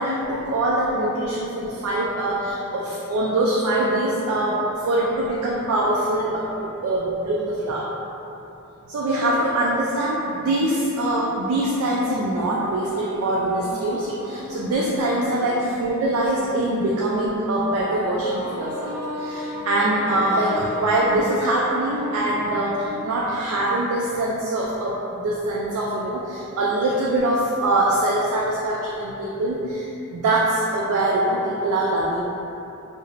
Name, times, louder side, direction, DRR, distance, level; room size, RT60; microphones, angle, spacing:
voice 1, 0.0-7.9 8.9-32.2, right 1 dB, 80° right, -4 dB, 0.3 m, -23 dB
sound 1, 12.4-23.8, left 1 dB, 55° left, 0.5 m, -36 dB
3.0 x 2.0 x 2.4 m, 2.9 s
head